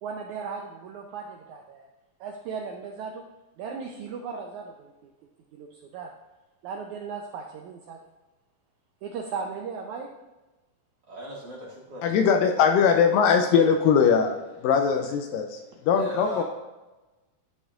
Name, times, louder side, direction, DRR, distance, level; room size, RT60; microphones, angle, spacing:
voice 1, 0.0-1.9 2.2-3.2 3.6-5.1 5.5-6.1 6.6-8.0 9.0-10.1 13.6-13.7, right 5 dB, 85° right, 1 dB, 1.7 m, -36 dB
voice 2, 11.1-12.2 14.9-15.1 15.9-16.4, equal, 35° right, -6 dB, 2.2 m, -38 dB
voice 3, 12.0-15.6 15.8-16.4, left 6 dB, 80° left, 5 dB, 2.1 m, -21 dB
13.0 x 5.3 x 2.5 m, 1.1 s
omnidirectional pair, 4.2 m